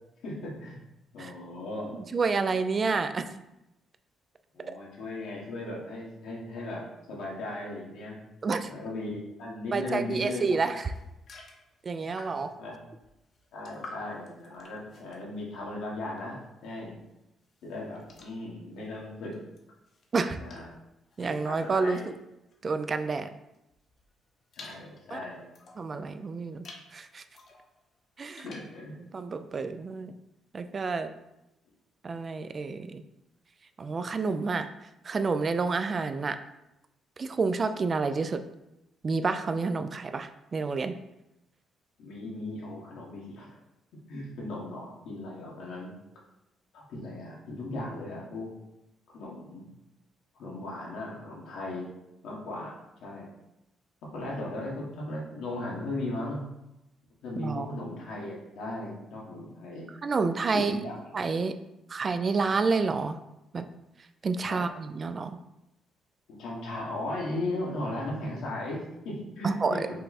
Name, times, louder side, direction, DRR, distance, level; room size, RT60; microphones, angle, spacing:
voice 1, 0.2-0.8 1.1-2.1 2.9-3.0 4.5-8.2 8.6-10.5 11.9-12.1 12.6-12.8 13.5-16.9 17.6-19.4 20.4-20.7 21.3-22.0 24.6-25.5 28.4-29.0 42.0-43.5 44.1-45.9 46.7-48.5 49.1-49.7 50.3-51.9 52.2-53.3 54.1-56.4 57.2-59.9 60.5-61.0 64.5-64.6 66.3-70.0, left 2 dB, 80° left, -3 dB, 1.4 m, -37 dB
voice 2, 1.9-3.4 4.7-4.8 8.4-8.7 9.7-10.9 11.8-12.5 20.1-20.4 21.2-22.0 22.6-23.3 25.1-25.2 25.8-26.6 26.9-27.2 28.2-28.5 29.0-30.1 30.5-31.1 32.0-33.0 33.8-34.7 35.0-36.4 37.2-38.4 39.0-41.0 57.4-57.7 60.0-60.8 61.1-61.5 61.9-63.2 63.5-63.7 64.2-65.4 69.4-70.0, right 4 dB, 40° right, 10 dB, 0.3 m, -29 dB
sound 1, 10.5-12.6 13.0-16.4 16.8-23.1 23.5-25.9 26.4-26.9 27.3-28.8, left 3 dB, 55° left, 0.9 m, -51 dB
5.4 x 2.2 x 4.1 m, 0.90 s
cardioid pair, 90°, 0 cm